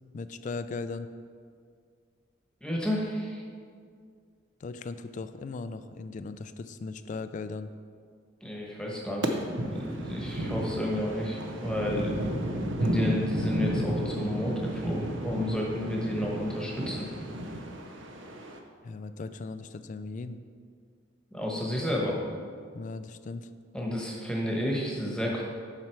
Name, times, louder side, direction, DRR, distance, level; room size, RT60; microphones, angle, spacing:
voice 1, 0.1-1.1 4.6-7.7 18.8-20.4 22.7-23.5, left 3 dB, 40° left, 12 dB, 0.3 m, -38 dB
voice 2, 2.6-3.4 8.4-9.4 9.7-12.2 12.8-17.1 21.3-22.2 23.7-25.4, left 1 dB, 5° left, -3 dB, 1.1 m, -31 dB
sound 1, 9.2-18.6, right 1 dB, 75° right, 0.7 m, -33 dB
7.5 x 5.7 x 4.6 m, 2.1 s
head